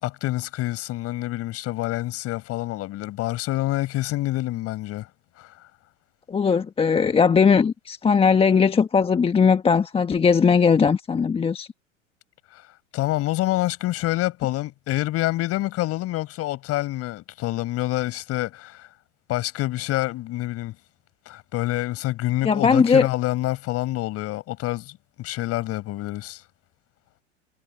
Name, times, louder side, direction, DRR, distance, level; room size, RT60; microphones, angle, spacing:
voice 1, 0.0-5.1 5.4-5.5 12.5-12.6 12.9-18.9 19.3-20.8 21.3-26.4, left 16 dB, 40° left, 5.3 m, -27 dB
voice 2, 6.3-11.7 22.4-23.1, left 6 dB, 15° left, 1.4 m, -19 dB
hypercardioid pair, 100°, 38 cm